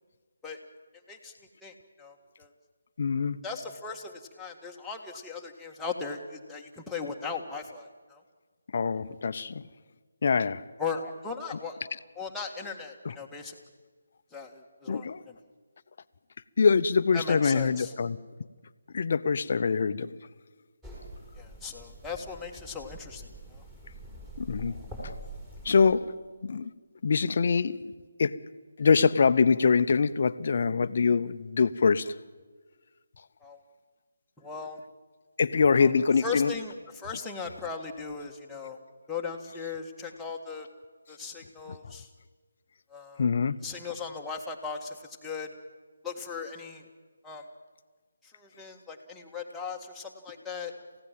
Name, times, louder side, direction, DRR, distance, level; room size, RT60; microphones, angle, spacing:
voice 1, 1.6-2.5 3.4-8.2 10.8-11.8 12.2-13.6 14.3-15.4 17.1-17.9 21.4-23.7 33.4-33.6 34.4-34.8 35.8-38.8 39.1-40.7 41.1-42.1 42.9-43.2 43.6-45.5 46.0-46.8 47.2-47.5 48.2-50.7, left 5 dB, 5° left, 1.8 m, -38 dB
voice 2, 3.0-3.4 8.7-9.6 10.2-10.6 13.0-13.1 14.9-15.2 16.6-18.2 18.9-20.1 24.4-24.7 25.6-26.2 26.4-26.7 27.0-27.9 28.2-28.4 28.8-32.2 35.4-36.5 43.2-43.6, left 5 dB, 50° left, 0.8 m, -24 dB
sound 1, 20.8-25.9, right 1 dB, 10° right, 6.2 m, -44 dB
28.0 x 16.0 x 7.6 m
figure-of-eight pair, 155°, 0 cm